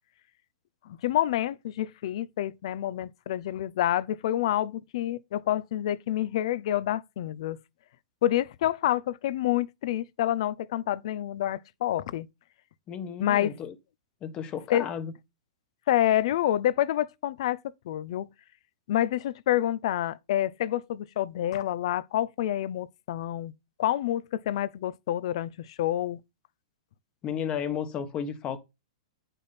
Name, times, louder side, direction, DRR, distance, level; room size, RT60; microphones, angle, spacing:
voice 1, 0.9-7.6 8.2-12.3 13.2-13.5 14.7-14.9 15.9-17.6 17.9-18.3 18.9-23.5 23.8-26.2, left 12 dB, 60° left, 0.6 m, -28 dB
voice 2, 12.9-13.7 14.2-15.1 27.2-28.6, left 8 dB, 25° left, 1.2 m, -33 dB
8.7 x 5.4 x 4.1 m
hypercardioid pair, 145°, 3 cm